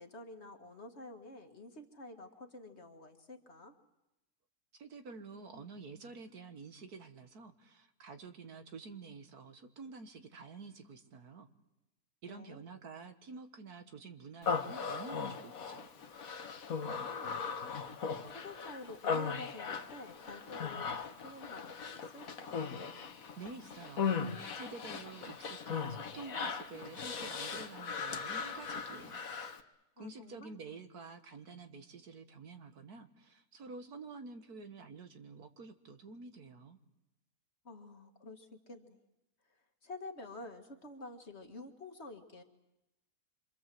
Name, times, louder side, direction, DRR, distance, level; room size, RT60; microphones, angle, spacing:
voice 1, 0.0-3.8 12.3-12.6 16.9-17.4 18.3-22.7 30.0-30.6 37.6-39.1 39.5-42.4, left 2 dB, 45° left, 6 dB, 2.0 m, -49 dB
voice 2, 4.8-11.5 12.2-15.9 23.4-29.2 30.0-36.8, right 4 dB, 75° right, 8 dB, 2.1 m, -49 dB
Human voice, 14.4-29.6, left 5 dB, 60° left, 1.7 m, -38 dB
26.5 x 26.0 x 7.7 m, 0.94 s
omnidirectional pair, 1.7 m